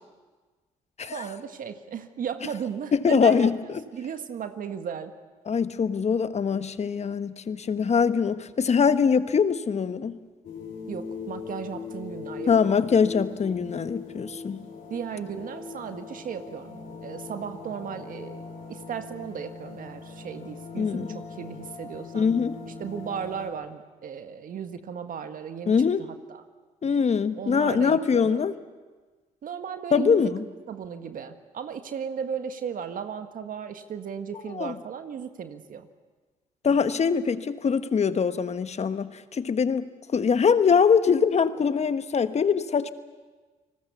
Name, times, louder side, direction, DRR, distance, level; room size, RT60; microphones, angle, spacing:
voice 1, 1.1-5.1 10.9-12.8 14.9-22.3 22.8-26.4 27.4-28.5 29.4-30.2 30.7-35.9, right 7 dB, 60° right, 8 dB, 1.6 m, -36 dB
voice 2, 2.9-3.8 5.5-10.2 12.5-14.6 20.8-21.2 22.1-22.6 25.7-26.1 26.8-28.5 29.9-30.4 34.5-34.8 36.6-42.9, left 6 dB, 45° left, 12 dB, 1.3 m, -23 dB
sound 1, 10.4-23.5, left 5 dB, 60° left, 5.6 m, -40 dB
29.5 x 19.5 x 7.0 m, 1.3 s
supercardioid pair, 55°, 16 cm